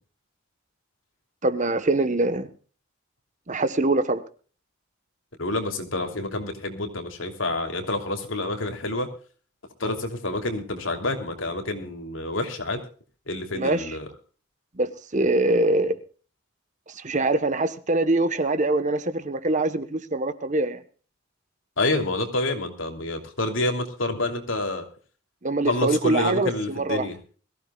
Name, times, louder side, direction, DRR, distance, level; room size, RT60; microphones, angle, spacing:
voice 1, 1.4-2.5 3.5-4.2 13.5-14.0 14.8-16.0 16.9-20.8 25.4-27.1, right 2 dB, 35° right, 11 dB, 1.1 m, -24 dB
voice 2, 5.4-9.1 9.8-12.8 13.3-14.1 21.8-24.8 25.6-27.2, left 2 dB, 65° left, 5 dB, 3.0 m, -28 dB
22.0 x 15.5 x 2.3 m, 0.40 s
head